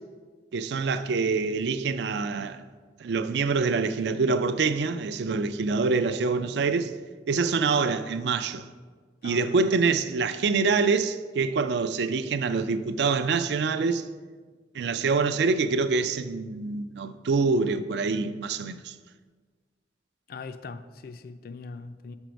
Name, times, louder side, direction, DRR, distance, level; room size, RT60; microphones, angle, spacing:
voice 1, 0.5-2.7 3.0-6.9 7.3-8.6 9.2-14.0 14.7-18.9, right 4 dB, 70° right, 0.4 m, -25 dB
voice 2, 9.2-9.5 20.3-22.2, left 4 dB, 55° left, 0.4 m, -41 dB
6.8 x 4.5 x 5.1 m
head